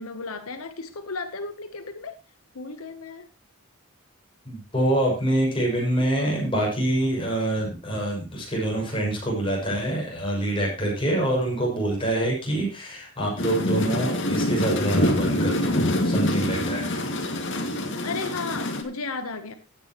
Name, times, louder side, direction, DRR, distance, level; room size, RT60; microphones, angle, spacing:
voice 1, 0.0-2.1 2.5-3.2 18.0-19.6, left 3 dB, 85° left, 1.0 m, -34 dB
voice 2, 4.4-17.1, right 1 dB, 25° left, 6.7 m, -26 dB
sound 1, 13.4-18.8, left 1 dB, 60° left, 2.2 m, -25 dB
15.5 x 9.6 x 3.1 m
head